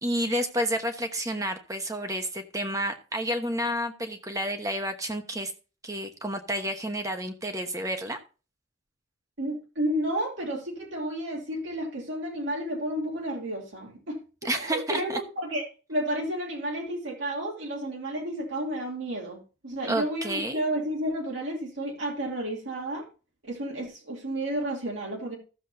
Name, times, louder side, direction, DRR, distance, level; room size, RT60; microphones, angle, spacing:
voice 1, 0.0-5.5 5.8-8.2 14.4-15.2 19.9-20.6, right 1 dB, 15° right, 6 dB, 1.1 m, -30 dB
voice 2, 9.4-14.2 14.5-15.6 15.9-23.1 23.5-25.4, right 1 dB, 75° right, -1 dB, 2.8 m, -31 dB
15.0 x 7.3 x 2.7 m, 0.33 s
head